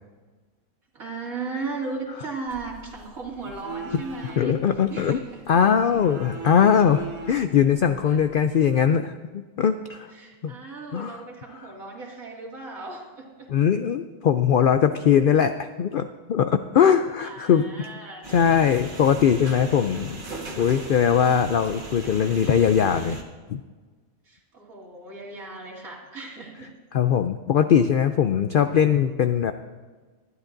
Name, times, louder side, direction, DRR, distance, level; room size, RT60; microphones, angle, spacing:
voice 1, 0.9-5.6 8.1-8.2 10.1-13.5 17.2-18.3 24.2-26.7, right 3 dB, 85° right, -3 dB, 2.8 m, -36 dB
sound 1, 2.5-8.5, right 4 dB, 65° right, 1.8 m, -41 dB
voice 2, 4.4-5.2 5.5-10.1 10.4-10.5 10.9-11.2 13.5-17.6 18.3-20.2 20.6-23.2 23.5-23.6 26.9-29.5, left 8 dB, 75° left, 9 dB, 0.4 m, -21 dB
sound 2, 18.2-23.2, right 2 dB, 40° right, 1.6 m, -38 dB
19.5 x 12.5 x 2.6 m, 1.4 s
omnidirectional pair, 1.4 m